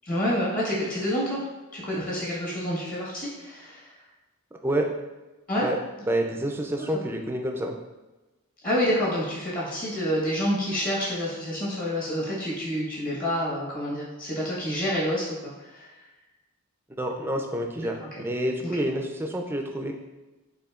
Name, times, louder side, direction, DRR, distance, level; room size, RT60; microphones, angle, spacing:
voice 1, 0.0-1.5 1.7-3.9 5.5-5.7 8.6-15.3 15.6-15.9 17.7-17.9, equal, 40° left, -6 dB, 1.2 m, -28 dB
voice 2, 6.1-7.8 17.0-19.9, right 1 dB, 10° right, 2 dB, 0.3 m, -28 dB
7.8 x 2.7 x 2.4 m, 1.1 s
head